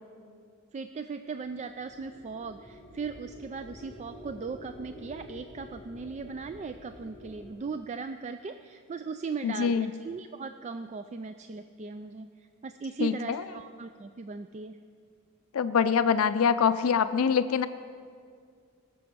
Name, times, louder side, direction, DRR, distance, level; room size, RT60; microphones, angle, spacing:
voice 1, 0.7-14.8, right 5 dB, 35° right, 9 dB, 0.3 m, -38 dB
sound 1, 1.4-7.5, equal, 15° left, 2.0 m, -49 dB
voice 2, 9.4-9.9 13.0-13.4 15.5-17.7, left 6 dB, 80° left, 12 dB, 0.4 m, -24 dB
18.5 x 6.9 x 6.1 m, 2.2 s
head